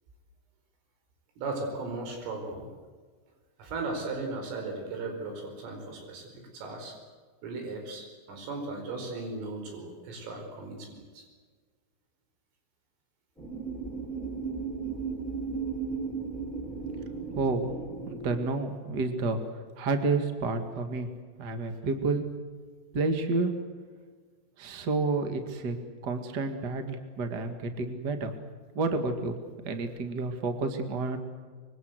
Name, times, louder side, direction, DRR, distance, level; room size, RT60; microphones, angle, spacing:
voice 1, 1.4-2.7 3.6-6.9 7.4-11.2, right 3 dB, 85° right, 3 dB, 7.4 m, -37 dB
sound 1, 13.4-18.4, right 5 dB, ahead, 6.9 m, -35 dB
voice 2, 17.3-17.7 18.1-19.4 19.8-21.1 21.4-22.2 22.9-23.5 24.6-25.8 26.0-28.3 28.7-29.4 29.6-31.2, right 3 dB, 65° right, 6 dB, 1.0 m, -30 dB
25.5 x 23.5 x 8.1 m, 1.5 s
omnidirectional pair, 5.7 m